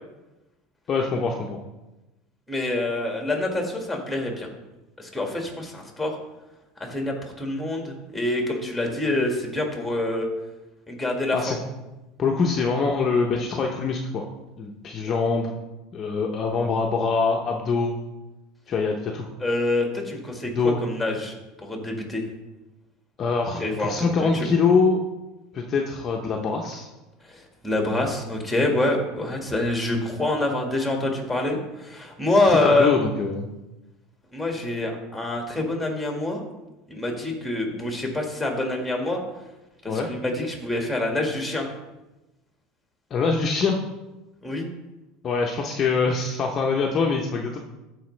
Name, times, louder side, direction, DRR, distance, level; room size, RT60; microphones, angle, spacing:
voice 1, 0.9-1.6 11.3-11.6 12.2-14.2 14.6-15.5 15.9-18.0 18.7-19.3 20.5-20.8 23.2-25.0 25.5-26.9 32.4-33.5 39.9-40.1 43.1-43.8 45.2-47.6, left 4 dB, 30° left, 0 dB, 0.8 m, -24 dB
voice 2, 2.5-4.5 5.0-6.2 6.8-10.3 10.9-11.6 19.4-22.2 23.6-24.5 27.2-33.0 34.3-36.4 36.9-39.2 39.8-41.7 44.4-44.7, left 2 dB, ahead, 1 dB, 1.7 m, -26 dB
13.5 x 4.8 x 3.3 m, 1.0 s
supercardioid pair, 135°, 0 cm